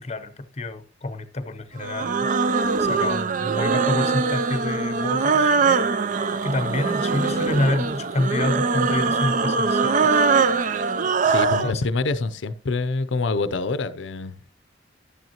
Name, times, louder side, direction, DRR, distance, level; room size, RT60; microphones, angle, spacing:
voice 1, 0.0-2.3 2.8-5.5 6.4-10.3 11.6-11.9, left 2 dB, 35° left, 0.7 m, -28 dB
sound 1, 1.8-11.7, right 4 dB, 45° right, 0.5 m, -22 dB
voice 2, 11.2-14.5, left 3 dB, 75° left, 0.6 m, -26 dB
11.5 x 9.1 x 2.9 m
head